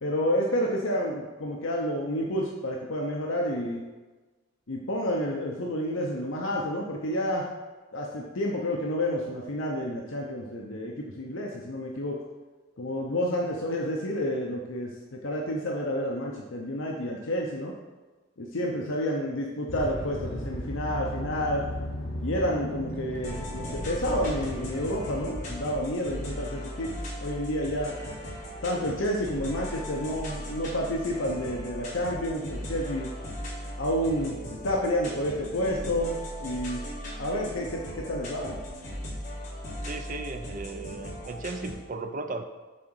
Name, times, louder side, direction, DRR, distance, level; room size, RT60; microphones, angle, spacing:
voice 1, 0.0-3.8 4.7-7.5 7.9-12.2 12.8-14.9 15.2-17.7 18.4-21.7 22.2-26.9 27.2-28.0 28.6-33.1 33.8-34.4 34.6-36.1 36.4-36.9 37.2-38.6, equal, 65° left, -1 dB, 0.8 m, -29 dB
sound 1, 19.7-25.6, equal, 80° left, 2.0 m, -36 dB
sound 2, 23.2-41.7, equal, 35° left, 2.5 m, -38 dB
voice 2, 39.8-42.4, right 3 dB, 40° right, 7 dB, 0.5 m, -36 dB
7.6 x 3.8 x 6.2 m, 1.2 s
head